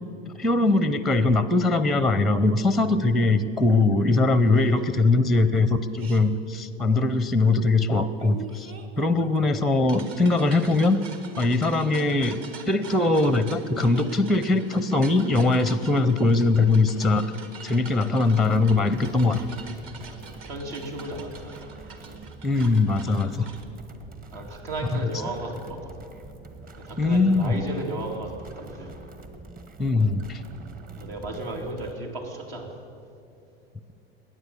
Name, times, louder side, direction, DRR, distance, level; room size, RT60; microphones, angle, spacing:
voice 1, 0.4-8.7 9.0-11.0 11.4-12.4 12.7-17.3 17.6-19.4 22.4-23.5 27.0-27.6 29.8-30.4, left 3 dB, ahead, 14 dB, 0.6 m, -21 dB
sound 1, 6.0-6.2 8.2-23.6, right 5 dB, 45° right, 1.7 m, -45 dB
sound 2, 18.2-31.9, right 3 dB, 25° right, 1.3 m, -45 dB
voice 2, 20.0-22.2 24.3-26.1 26.8-29.0 30.9-32.8, right 2 dB, 65° right, 1 dB, 2.6 m, -35 dB
21.0 x 9.1 x 7.0 m, 2.7 s
hypercardioid pair, 90°, 32 cm